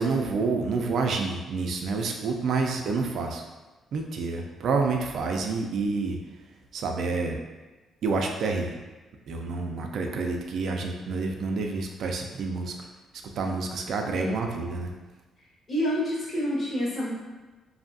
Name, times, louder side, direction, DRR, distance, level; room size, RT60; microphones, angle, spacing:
voice 1, 0.0-3.4 3.9-6.2 6.7-7.4 8.0-8.8 9.3-12.8 13.4-14.9, right 4 dB, 65° right, 3 dB, 0.3 m, -28 dB
voice 2, 15.7-17.1, equal, 50° left, -6 dB, 1.2 m, -28 dB
2.6 x 2.4 x 2.6 m, 1.2 s
cardioid pair, 90°, 0 cm